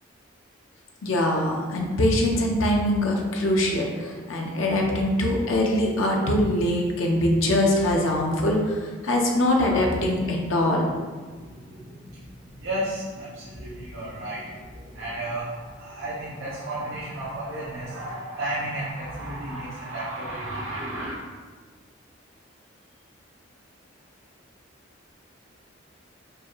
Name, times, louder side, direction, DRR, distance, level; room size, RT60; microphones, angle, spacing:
voice 1, 1.0-8.6 9.0-10.9, left 1 dB, 85° left, 0 dB, 0.6 m, -23 dB
voice 2, 11.2-21.1, right 1 dB, 70° right, -8 dB, 0.8 m, -33 dB
4.6 x 2.4 x 3.0 m, 1.4 s
head